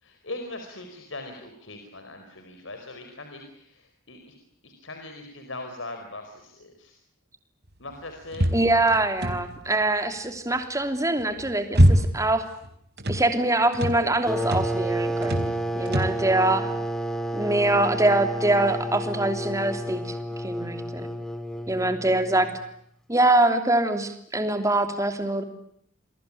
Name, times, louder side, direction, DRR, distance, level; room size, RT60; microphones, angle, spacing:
voice 1, 0.0-4.4 4.6-7.0 7.8-8.5, left 2 dB, 70° left, 5 dB, 4.6 m, -40 dB
sound 1, 8.3-9.7 11.2-12.4 12.6-13.3 13.7-14.0 14.4-14.8 15.2-15.6 15.9-16.2, equal, 55° right, 4.5 m, -23 dB
voice 2, 8.5-12.5 13.1-16.7 17.3-20.2 20.4-21.1 21.7-22.5 23.1-25.4, right 2 dB, 15° right, 7 dB, 3.1 m, -24 dB
sound 2, 14.3-22.7, right 1 dB, ahead, 2.5 m, -31 dB
29.0 x 22.5 x 8.6 m, 0.70 s
head